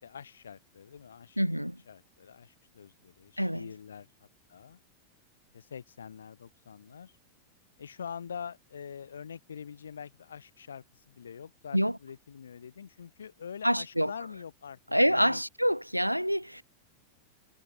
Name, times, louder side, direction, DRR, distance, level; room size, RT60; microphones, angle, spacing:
voice 1, 0.0-1.4 1.9-4.8 5.5-7.2 7.8-14.8 15.1-15.4, left 7 dB, 70° left, 2.8 m, -45 dB
voice 2, 1.4-1.8 3.4-3.7 11.7-12.0 13.6-14.1 14.9-16.6, equal, 90° right, 0.3 m, -26 dB
figure-of-eight pair, 90°, 0 cm